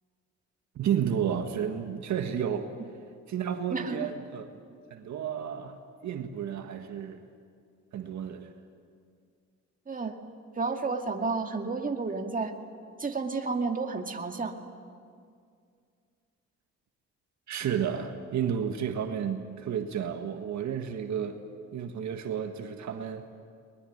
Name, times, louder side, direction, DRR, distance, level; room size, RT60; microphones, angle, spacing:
voice 1, 0.7-2.7 3.3-4.5 4.9-5.8 6.0-7.2 7.9-8.5 17.5-21.4 21.7-23.3, right 8 dB, 65° right, 6 dB, 1.7 m, -31 dB
voice 2, 3.7-4.1 9.9-10.2 10.6-12.5 13.0-14.5, right 4 dB, 25° right, 4 dB, 2.2 m, -31 dB
21.5 x 21.5 x 9.5 m, 2.2 s
cardioid pair, 90°, 30 cm